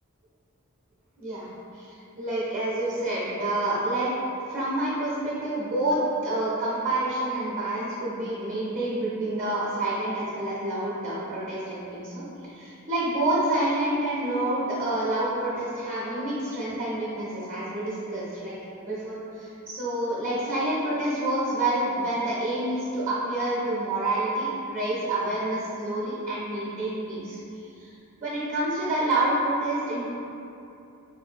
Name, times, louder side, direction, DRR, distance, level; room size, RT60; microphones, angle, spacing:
voice 1, 1.2-1.5 2.2-4.1 4.5-12.1 12.6-18.5 18.8-27.9 28.2-30.1, right 1 dB, 40° right, -8 dB, 0.7 m, -28 dB
3.9 x 2.6 x 2.5 m, 2.8 s
head